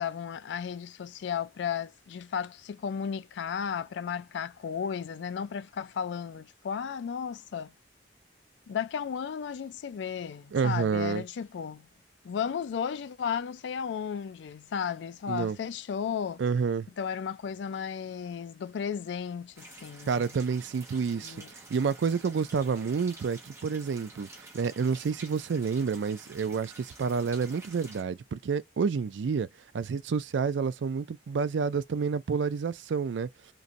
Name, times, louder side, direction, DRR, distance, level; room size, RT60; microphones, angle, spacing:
voice 1, 0.0-7.7 8.7-11.9 12.2-16.4 17.0-20.4 21.2-21.5, left 7 dB, 75° left, 0.3 m, -34 dB
voice 2, 10.5-11.2 15.3-15.6 16.4-16.9 20.1-21.4 21.7-24.3 24.5-29.5 29.7-33.3, right 5 dB, 85° right, 0.4 m, -29 dB
sound 1, 19.6-28.0, right 2 dB, 15° right, 0.8 m, -50 dB
3.0 x 2.6 x 2.5 m
head